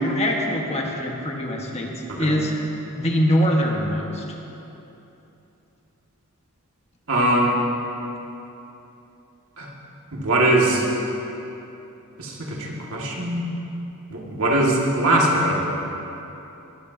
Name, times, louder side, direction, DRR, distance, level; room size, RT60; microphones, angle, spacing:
voice 1, 0.0-2.5 2.9-4.2, equal, 30° left, 0 dB, 1.4 m, -23 dB
voice 2, 7.1-7.6 9.6-9.7 10.1-10.8 12.2-12.6 12.9-13.5 14.1-15.6, right 1 dB, 65° right, -2 dB, 2.0 m, -21 dB
21.5 x 13.0 x 2.8 m, 3.0 s
head